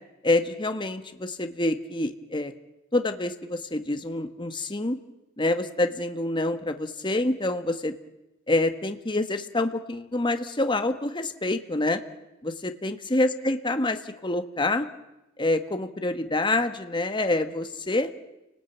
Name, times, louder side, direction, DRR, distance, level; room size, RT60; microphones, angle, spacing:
voice 1, 0.2-2.5 2.9-5.0 5.4-7.9 8.5-12.0 12.4-14.9 15.4-18.1, left 2 dB, 25° left, 8 dB, 1.5 m, -27 dB
30.0 x 19.5 x 9.3 m, 0.97 s
head